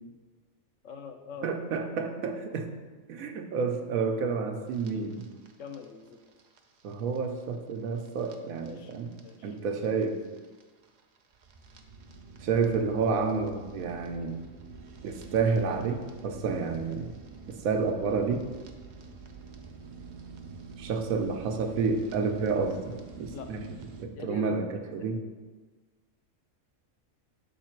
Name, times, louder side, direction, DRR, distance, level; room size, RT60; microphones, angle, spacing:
voice 1, 0.8-1.5 5.0-5.2 5.6-6.2 8.7-8.9 9.2-9.5 23.3-23.5 24.1-24.7 25.0-25.1, left 6 dB, 70° left, 5 dB, 0.9 m, -43 dB
voice 2, 1.4-2.7 3.1-5.3 6.8-9.1 9.4-10.2 12.4-14.4 15.0-17.1 17.5-18.5 20.8-24.7 24.9-25.2, right 5 dB, 85° right, 5 dB, 1.1 m, -30 dB
sound 1, 4.7-24.0, right 4 dB, 70° right, 0.4 m, -48 dB
6.5 x 3.8 x 4.4 m, 1.3 s
omnidirectional pair, 1.4 m